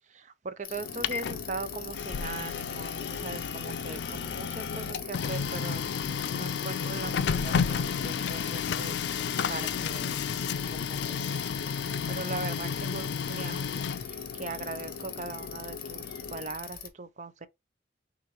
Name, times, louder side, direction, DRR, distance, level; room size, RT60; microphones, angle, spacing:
voice 1, 0.1-5.8 6.3-10.2 10.6-11.4 12.1-13.7 14.0-17.5, right 3 dB, 40° right, 0.5 m, -40 dB
Bicycle, 0.6-16.9, left 9 dB, 50° left, 0.8 m, -43 dB
Printer, 0.7-16.5, left 6 dB, 75° left, 0.4 m, -32 dB
6.5 x 2.5 x 3.0 m
head